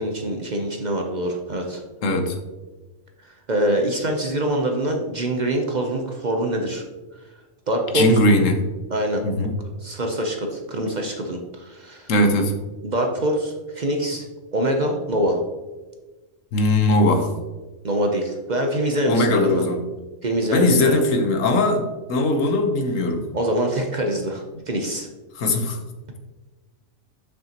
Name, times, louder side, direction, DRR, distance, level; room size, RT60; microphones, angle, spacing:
voice 1, 0.0-1.8 3.5-6.8 7.7-8.2 8.9-9.2 9.8-12.1 12.8-14.2 14.5-15.4 17.8-19.6 20.2-21.0 23.3-25.1, right 1 dB, 45° right, 2 dB, 0.7 m, -24 dB
voice 2, 2.0-2.3 7.9-8.6 9.2-9.5 12.1-12.5 16.5-17.3 19.1-19.8 20.5-23.2 25.3-25.8, left 2 dB, 80° left, 5 dB, 1.3 m, -19 dB
7.7 x 6.0 x 2.9 m, 1.2 s
omnidirectional pair, 1.3 m